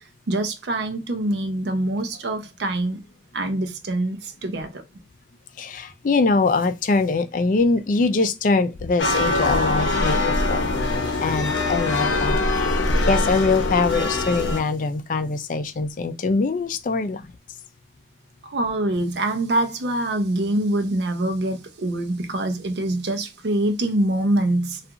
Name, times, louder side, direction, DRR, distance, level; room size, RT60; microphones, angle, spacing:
voice 1, 0.3-3.0 3.3-4.8 18.4-24.8, right 1 dB, 65° right, 0.5 m, -24 dB
voice 2, 5.6-10.6 11.2-12.4 13.0-17.3, left 3 dB, 45° left, 0.3 m, -23 dB
sound 1, 9.0-14.6, left 2 dB, 90° left, 0.6 m, -22 dB
2.4 x 2.4 x 2.7 m
head